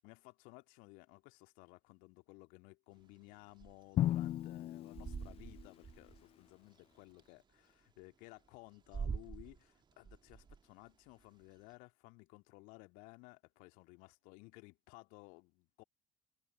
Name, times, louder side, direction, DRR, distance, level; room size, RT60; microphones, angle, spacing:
voice 1, 0.0-15.8, left 26 dB, 60° left, 2.1 m, -57 dB
sound 1, 3.0-7.3 7.8-7.9 8.4-11.7, right 6 dB, 30° right, 1.6 m, -45 dB
Drum, 4.0-6.0, left 12 dB, 40° left, 0.4 m, -36 dB
figure-of-eight pair, 55°, 16 cm